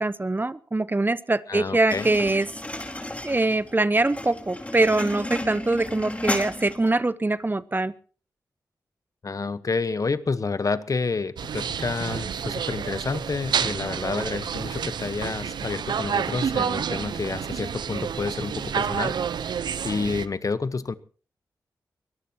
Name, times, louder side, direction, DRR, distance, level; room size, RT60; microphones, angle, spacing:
voice 1, 0.0-2.5 3.2-7.9, right 2 dB, 25° right, 17 dB, 0.9 m, -23 dB
voice 2, 1.5-2.1 9.2-21.0, left 4 dB, 50° left, 15 dB, 1.1 m, -29 dB
sound 1, 1.9-6.9, left 1 dB, 20° left, 4.6 m, -33 dB
sound 2, 11.4-20.3, right 7 dB, 75° right, 0.8 m, -29 dB
24.0 x 18.0 x 2.9 m, 0.39 s
supercardioid pair, 40°, 7 cm